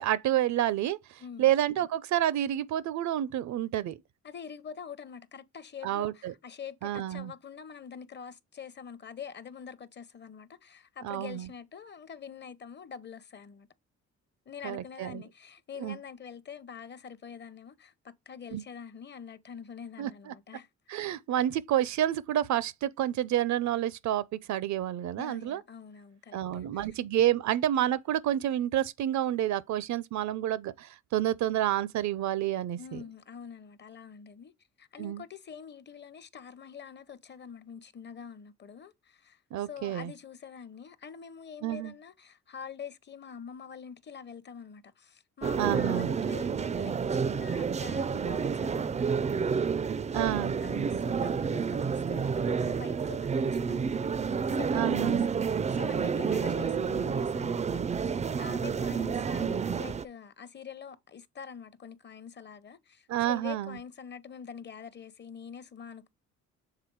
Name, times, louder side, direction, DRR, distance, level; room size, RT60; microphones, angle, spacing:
voice 1, 0.0-4.0 5.8-6.3 6.8-7.3 11.0-11.5 14.6-15.2 15.8-16.0 18.5-18.6 20.0-20.3 20.9-25.6 26.3-33.0 35.0-35.2 39.5-40.1 41.6-41.9 45.6-46.1 50.1-50.5 54.7-55.3 63.1-63.8, right 12 dB, 70° right, 0.6 m, -29 dB
voice 2, 1.2-1.5 4.2-13.7 14.5-21.0 25.2-26.9 32.8-34.5 34.8-39.4 39.7-50.1 50.6-54.0 54.5-66.1, left 7 dB, 35° left, 0.7 m, -45 dB
sound 1, 45.4-60.1, right 6 dB, 25° right, 0.4 m, -29 dB
6.8 x 3.6 x 4.6 m
cardioid pair, 90°, 30 cm